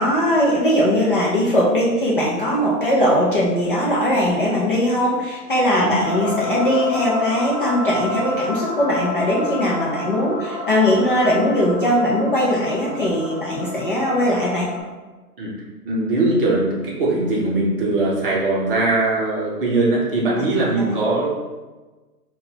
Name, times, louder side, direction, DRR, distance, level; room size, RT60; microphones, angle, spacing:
voice 1, 0.0-14.7, equal, 35° left, -5 dB, 0.4 m, -20 dB
sound 1, 6.0-14.8, left 2 dB, 5° right, 1.1 m, -29 dB
voice 2, 15.8-21.3, right 2 dB, 35° right, -3 dB, 0.7 m, -20 dB
3.8 x 2.3 x 2.7 m, 1.2 s
hypercardioid pair, 135°, 48 cm